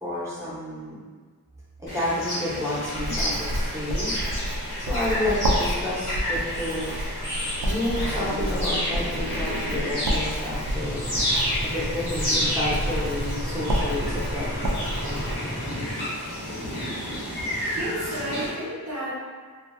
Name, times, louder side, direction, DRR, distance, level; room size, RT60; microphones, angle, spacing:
voice 1, 0.0-1.0 1.8-4.1 4.8-7.0 7.6-11.0 11.6-14.5 15.0-16.1, left 1 dB, 10° right, -8 dB, 0.9 m, -30 dB
sound 1, 1.9-18.5, equal, 80° left, 1.1 m, -30 dB
Writing, 2.9-15.3, equal, 90° right, 0.5 m, -30 dB
sound 2, 10.7-15.9, left 1 dB, 40° left, 0.7 m, -36 dB
voice 2, 17.6-19.1, right 1 dB, 45° right, -9 dB, 0.7 m, -32 dB
2.7 x 2.5 x 2.6 m, 1.5 s
wide cardioid pair, 50°, 37 cm